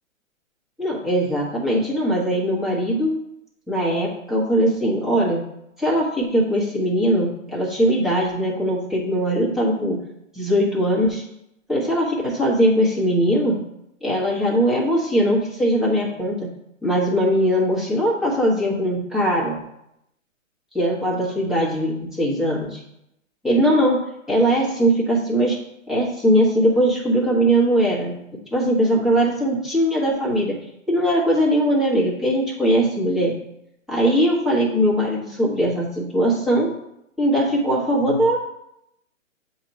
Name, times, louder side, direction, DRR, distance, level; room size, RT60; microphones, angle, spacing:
voice 1, 0.8-3.2 3.7-5.4 5.8-10.0 10.3-11.2 11.7-13.6 14.0-16.5 16.8-19.7 20.7-22.8 23.4-24.0 24.3-25.6 25.9-28.2 28.5-30.6 30.9-33.3 33.9-36.7 37.2-38.4, equal, ahead, -6 dB, 1.3 m, -20 dB
7.6 x 3.0 x 5.3 m, 0.82 s
hypercardioid pair, 140°, 40 cm